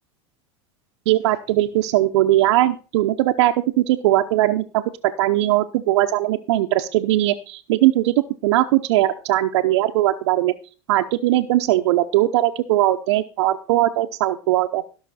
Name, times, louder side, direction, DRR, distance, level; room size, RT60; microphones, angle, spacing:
voice 1, 1.1-8.1 8.4-10.5 10.9-14.8, right 15 dB, 70° right, 3 dB, 0.7 m, -19 dB
17.0 x 5.8 x 4.2 m, 0.36 s
hypercardioid pair, 95°, 15 cm